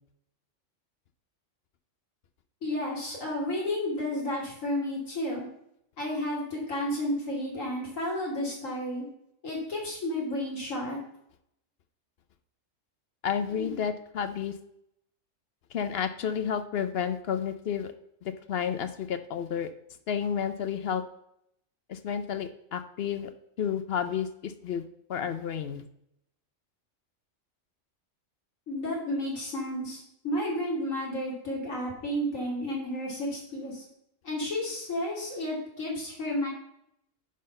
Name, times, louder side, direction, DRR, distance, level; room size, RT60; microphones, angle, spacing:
voice 1, 2.6-5.4 6.0-9.0 9.4-11.0 13.5-13.7 28.7-33.8 34.2-36.5, left 1 dB, 85° left, -3 dB, 3.1 m, -32 dB
voice 2, 13.2-14.5 15.7-17.9 18.2-19.7 20.1-21.0 21.9-23.3 23.6-24.8 25.1-25.8, left 8 dB, 60° left, 10 dB, 0.8 m, -31 dB
10.5 x 3.9 x 5.3 m, 0.76 s
omnidirectional pair, 1.3 m